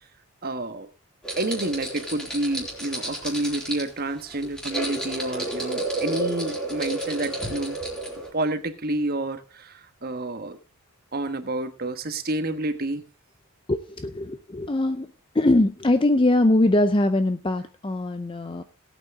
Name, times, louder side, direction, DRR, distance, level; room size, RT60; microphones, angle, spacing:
voice 1, 0.4-0.9 1.4-7.8 8.3-10.6 11.1-13.0, right 2 dB, 45° right, 8 dB, 1.3 m, -29 dB
sound 1, 1.2-8.3, right 1 dB, 5° left, 3.6 m, -31 dB
voice 2, 13.7-15.1 15.3-18.6, left 1 dB, 25° left, 10 dB, 0.5 m, -22 dB
18.0 x 8.4 x 3.6 m, 0.30 s
head